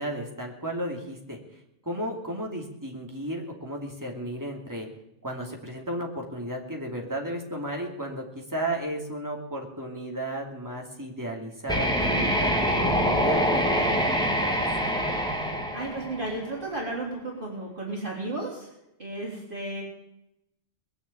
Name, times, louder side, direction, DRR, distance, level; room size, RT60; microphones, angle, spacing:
voice 1, 0.0-1.4 1.8-4.9 5.2-14.7, right 1 dB, 15° right, 0 dB, 2.7 m, -34 dB
sound 1, 11.7-16.6, equal, 5° left, 2.2 m, -25 dB
voice 2, 15.7-18.7 19.0-19.8, right 2 dB, 45° right, -3 dB, 3.7 m, -33 dB
21.0 x 7.1 x 8.6 m, 0.84 s
omnidirectional pair, 1.2 m